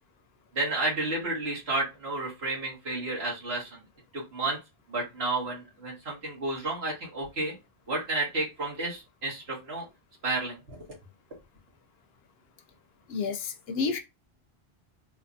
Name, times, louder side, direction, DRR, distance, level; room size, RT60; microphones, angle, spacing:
voice 1, 0.5-3.8 4.1-4.6 4.9-7.5 7.9-9.8 10.2-10.8, right 2 dB, 75° right, 2.1 m, -31 dB
voice 2, 13.1-14.0, left 4 dB, 70° left, 0.8 m, -30 dB
4.1 x 2.9 x 2.6 m
omnidirectional pair, 1.1 m